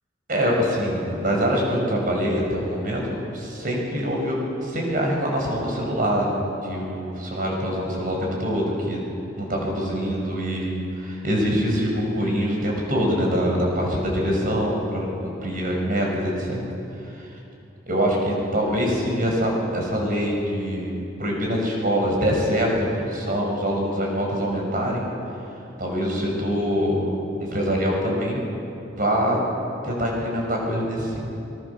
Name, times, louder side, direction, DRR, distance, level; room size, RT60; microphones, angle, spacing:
voice 1, 0.3-6.4 6.6-9.0 9.4-16.6 17.0-17.2 17.9-20.9 21.2-25.0 25.8-27.1 27.4-28.4 28.9-29.4 29.8-31.2, equal, 45° right, -1 dB, 6.2 m, -24 dB
26.5 x 22.0 x 7.1 m, 2.9 s
head